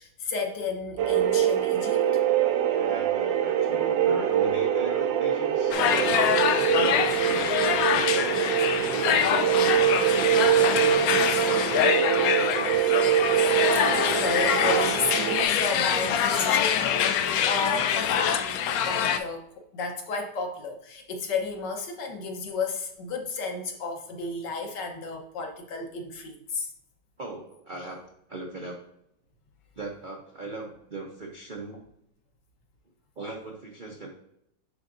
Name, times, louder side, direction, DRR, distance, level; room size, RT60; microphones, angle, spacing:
voice 1, 0.0-2.1 8.9-9.1 13.7-26.7, left 4 dB, 65° left, 3 dB, 1.6 m, -33 dB
sound 1, 1.0-15.4, right 10 dB, 75° right, 1.3 m, -24 dB
voice 2, 2.7-7.4 7.7-12.7 27.2-28.0 28.3-28.8 29.8-31.8 33.2-34.1, right 2 dB, 55° right, 0 dB, 0.5 m, -39 dB
sound 2, 5.7-19.2, left 8 dB, 80° left, 0.8 m, -25 dB
10.0 x 3.8 x 2.5 m, 0.77 s
omnidirectional pair, 2.1 m